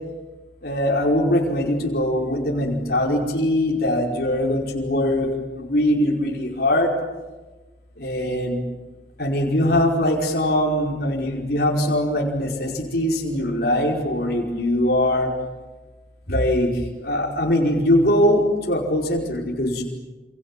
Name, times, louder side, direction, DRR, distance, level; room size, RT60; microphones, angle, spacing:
voice 1, 0.6-5.3 5.6-6.9 8.0-8.6 9.2-15.3 16.3-19.8, left 1 dB, 55° left, -2 dB, 5.0 m, -21 dB
28.5 x 27.5 x 7.6 m, 1.2 s
head